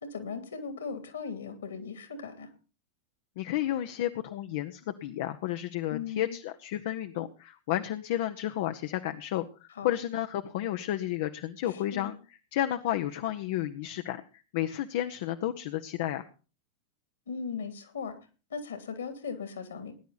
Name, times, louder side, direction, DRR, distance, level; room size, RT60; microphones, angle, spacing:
voice 1, 0.1-2.5 5.9-6.4 9.7-9.9 11.6-12.1 17.3-18.2 18.5-19.9, left 5 dB, 65° left, 8 dB, 2.7 m, -38 dB
voice 2, 3.4-16.2, left 13 dB, 50° left, 9 dB, 0.9 m, -32 dB
19.0 x 10.5 x 4.1 m, 0.35 s
figure-of-eight pair, 90°, 0 cm